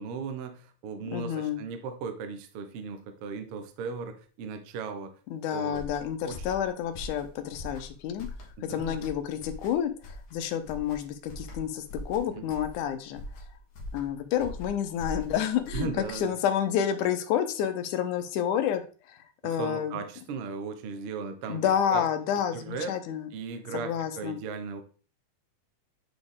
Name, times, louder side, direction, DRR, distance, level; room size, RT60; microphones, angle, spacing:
voice 1, 0.0-5.2 5.5-5.8 6.2-6.5 8.6-9.0 12.3-12.4 15.7-16.3 19.4-22.0 22.5-22.9 23.3-24.8, right 5 dB, 70° right, 7 dB, 1.3 m, -37 dB
voice 2, 1.1-1.6 5.3-8.3 8.6-13.2 13.9-18.8 19.1-20.0 21.5-23.3 23.7-24.4, left 9 dB, 80° left, 9 dB, 2.1 m, -29 dB
sound 1, 5.7-16.3, left 2 dB, 55° left, 1.4 m, -42 dB
7.7 x 4.2 x 3.5 m, 0.37 s
omnidirectional pair, 3.6 m